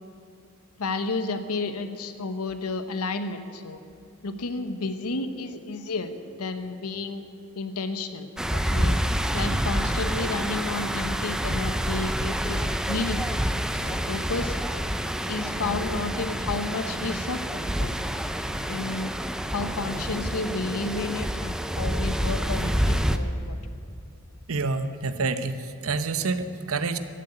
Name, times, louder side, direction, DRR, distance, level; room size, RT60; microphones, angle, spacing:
voice 1, 0.8-3.8 4.2-7.2 7.6-9.0 9.3-13.2 13.8-14.6 15.3-17.9 18.7-19.1 19.5-23.6, left 3 dB, 85° left, 9 dB, 0.9 m, -31 dB
sound 1, 8.4-23.2, equal, 5° right, 0.5 m, -28 dB
voice 2, 24.5-27.0, right 4 dB, 70° right, 10 dB, 0.8 m, -28 dB
14.5 x 7.9 x 9.9 m, 2.6 s
head